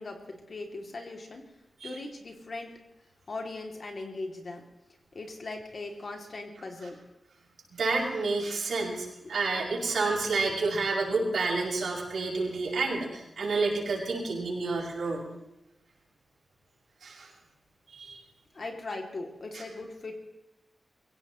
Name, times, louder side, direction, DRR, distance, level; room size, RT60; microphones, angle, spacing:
voice 1, 0.0-1.4 1.8-2.7 3.3-4.6 5.1-7.0 18.5-20.1, left 2 dB, 45° left, 2 dB, 2.7 m, -39 dB
voice 2, 7.7-15.3 17.0-17.3 17.9-18.2 19.5-19.6, right 3 dB, 85° right, -3 dB, 6.5 m, -29 dB
24.5 x 17.0 x 3.2 m, 0.93 s
wide cardioid pair, 170°, 0 cm